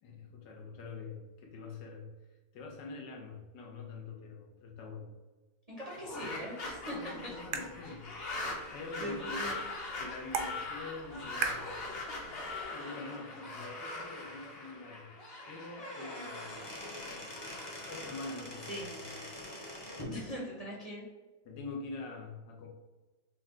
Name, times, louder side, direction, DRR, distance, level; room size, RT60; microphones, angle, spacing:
voice 1, 0.0-2.1 2.5-5.1 6.9-8.1 8.7-9.4 10.0-11.7 12.3-15.1 15.5-16.5 17.9-19.1 21.4-22.7, left 3 dB, 80° left, 1 dB, 1.5 m, -45 dB
voice 2, 5.7-7.1 7.8-8.0 9.0-9.6 18.7-18.9 20.1-21.0, equal, 35° right, -4 dB, 0.6 m, -41 dB
sound 1, 5.8-19.0, left 2 dB, 45° left, 0.9 m, -42 dB
Tongue Click, 6.6-12.6, right 6 dB, 75° right, 1.1 m, -42 dB
Squeak / Wood, 15.6-20.2, left 1 dB, 25° left, 0.5 m, -44 dB
5.9 x 2.2 x 3.6 m, 1.2 s
omnidirectional pair, 1.9 m